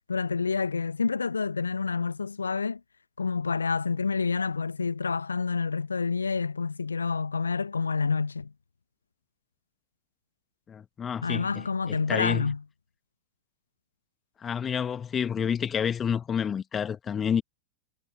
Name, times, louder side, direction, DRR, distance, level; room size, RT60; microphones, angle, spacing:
voice 1, 0.1-2.8 3.2-8.5 11.2-12.6, left 5 dB, 75° left, 1.3 m, -28 dB
voice 2, 10.7-12.5 14.4-17.4, left 7 dB, 20° left, 1.5 m, -29 dB
figure-of-eight pair, 90°, 0 cm